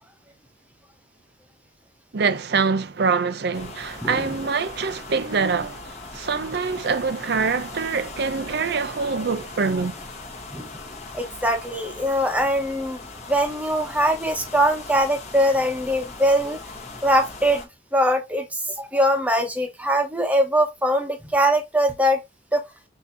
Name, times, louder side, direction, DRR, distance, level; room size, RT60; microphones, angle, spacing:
voice 1, 2.1-9.9, right 5 dB, 60° right, 0.5 m, -24 dB
sound 1, 3.5-17.7, left 3 dB, 40° left, 1.3 m, -39 dB
voice 2, 4.0-4.4 10.5-10.7 11.1-13.0 13.3-16.6 17.0-22.2 22.5-22.6, equal, 10° right, 1.0 m, -22 dB
6.1 x 2.9 x 2.7 m
head